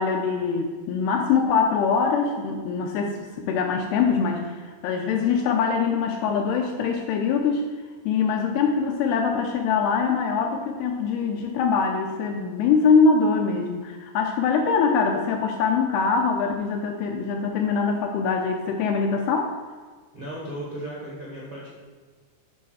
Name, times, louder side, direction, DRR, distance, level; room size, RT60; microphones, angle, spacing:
voice 1, 0.0-7.7 8.1-19.5, left 5 dB, 80° left, 2 dB, 2.4 m, -23 dB
voice 2, 20.1-21.7, right 1 dB, 55° right, -5 dB, 1.3 m, -35 dB
11.0 x 4.3 x 6.3 m, 1.4 s
omnidirectional pair, 5.1 m